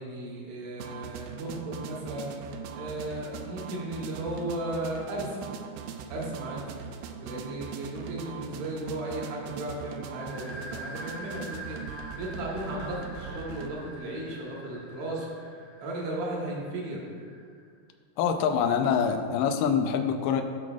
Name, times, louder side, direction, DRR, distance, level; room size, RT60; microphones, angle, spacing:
voice 1, 0.0-5.4 6.1-6.6 7.2-15.3 15.8-17.0, right 1 dB, 60° right, -3 dB, 2.2 m, -35 dB
sound 1, 0.8-13.7, right 7 dB, 90° right, 1.9 m, -40 dB
sound 2, 10.2-17.7, equal, 50° left, 2.1 m, -45 dB
voice 2, 18.2-20.4, left 7 dB, 85° left, 5 dB, 1.9 m, -25 dB
14.5 x 6.2 x 2.4 m, 2.1 s
omnidirectional pair, 4.5 m